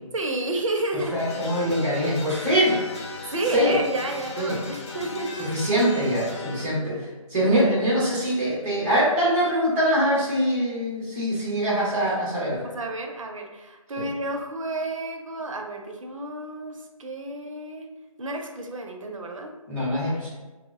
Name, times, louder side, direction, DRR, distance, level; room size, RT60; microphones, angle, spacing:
voice 1, 0.1-1.2 3.3-5.5 6.6-7.1 12.6-17.9 18.2-19.5, right 2 dB, 60° right, 3 dB, 0.5 m, -31 dB
sound 1, 1.0-6.7, left 3 dB, 50° left, 0.6 m, -37 dB
voice 2, 1.1-2.8 3.5-3.8 4.4-4.6 5.5-6.9 7.3-12.6 14.0-14.1 19.7-20.3, equal, 5° right, -12 dB, 0.4 m, -23 dB
3.0 x 2.1 x 3.4 m, 1.2 s
figure-of-eight pair, 160°, 18 cm